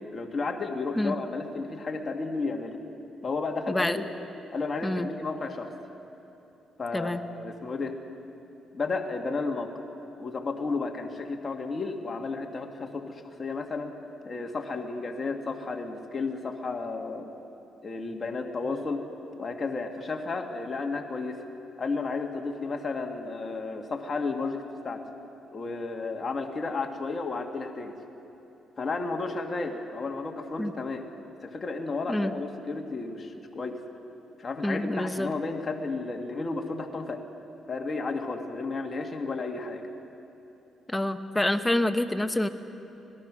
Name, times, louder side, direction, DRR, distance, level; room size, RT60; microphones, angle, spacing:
voice 1, 0.1-2.8 3.2-4.0 4.5-5.7 6.8-8.0 8.7-9.7 10.2-13.9 14.2-17.3 17.8-19.0 19.4-21.4 21.8-25.0 25.5-28.0 28.8-31.0 31.4-33.8 34.4-37.2 37.7-39.8, left 3 dB, 35° left, 3 dB, 1.8 m, -32 dB
voice 2, 34.6-35.3 40.9-42.5, left 1 dB, 10° left, 9 dB, 1.1 m, -27 dB
25.5 x 18.5 x 6.2 m, 3.0 s
cardioid pair, 90°, 0 cm